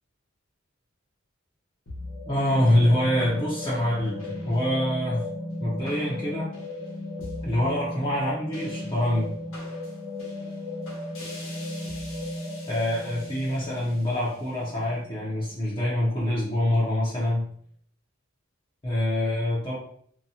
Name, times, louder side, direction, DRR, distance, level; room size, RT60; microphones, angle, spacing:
sound 1, 1.9-16.3, left 1 dB, 90° left, 0.9 m, -36 dB
voice 1, 2.3-5.2 5.6-6.5 7.4-9.3 12.7-17.5 18.8-19.8, left 1 dB, 25° left, -7 dB, 0.6 m, -25 dB
2.7 x 2.2 x 2.7 m, 0.63 s
head